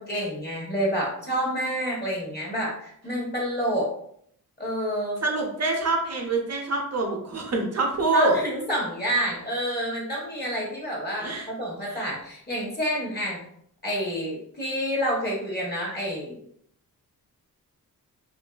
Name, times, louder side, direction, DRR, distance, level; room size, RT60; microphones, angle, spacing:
voice 1, 0.0-3.9 4.6-5.2 8.1-13.4 13.8-16.4, equal, 30° left, -3 dB, 0.9 m, -28 dB
voice 2, 5.2-8.4 11.2-11.5 11.9-12.0, right 2 dB, 45° right, 1 dB, 0.7 m, -25 dB
2.5 x 2.5 x 2.2 m, 0.67 s
cardioid pair, 80°, 36 cm